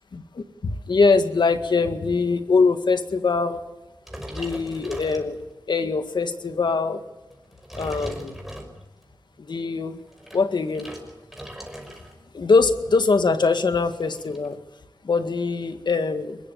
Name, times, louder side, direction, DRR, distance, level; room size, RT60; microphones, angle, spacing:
voice 1, 0.1-3.6 4.3-5.4 5.7-7.0 7.8-8.3 9.5-10.0 10.3-10.9 12.3-14.6 15.0-16.4, left 4 dB, 75° left, 9 dB, 1.9 m, -22 dB
sound 1, 4.0-5.8 6.3-6.5 7.3-9.1 9.9-12.2 12.5-12.8 13.1-13.2 13.4-14.5, equal, 5° right, 5.7 m, -39 dB
24.0 x 21.5 x 7.1 m, 1.1 s
wide cardioid pair, 80°, 8 cm